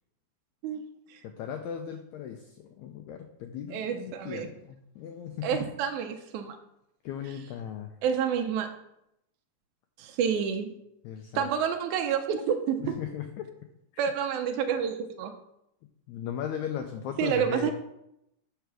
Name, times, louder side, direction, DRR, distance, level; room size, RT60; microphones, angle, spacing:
voice 1, 1.2-5.6 7.0-7.9 11.0-11.5 12.8-13.5 16.1-17.7, left 9 dB, 90° left, 5 dB, 1.6 m, -37 dB
voice 2, 3.7-4.5 5.4-6.6 8.0-8.7 10.0-10.7 11.3-13.0 14.0-15.3 17.2-17.7, right 8 dB, 85° right, 5 dB, 1.8 m, -29 dB
8.1 x 4.7 x 6.1 m, 0.82 s
omnidirectional pair, 4.0 m